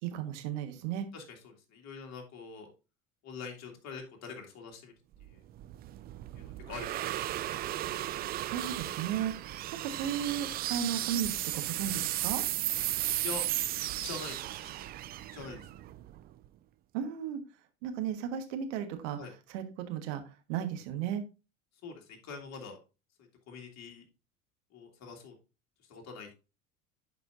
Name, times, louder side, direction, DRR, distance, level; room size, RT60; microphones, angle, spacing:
voice 1, 0.0-1.1 8.5-12.4 16.9-17.4 17.8-19.2 19.5-20.2 20.5-21.2, right 9 dB, 60° right, 7 dB, 1.5 m, -35 dB
voice 2, 1.1-2.7 3.2-4.9 5.2-5.4 6.4-7.3 13.2-13.4 14.0-14.7 15.3-15.7 19.2-19.3 21.8-22.8 23.5-24.1 24.7-25.3 25.9-26.3, left 5 dB, 40° left, 2 dB, 2.3 m, -44 dB
sound 1, 5.2-16.4, right 14 dB, 25° right, 0.3 m, -35 dB
10.5 x 4.8 x 2.6 m, 0.30 s
figure-of-eight pair, 75°, 41 cm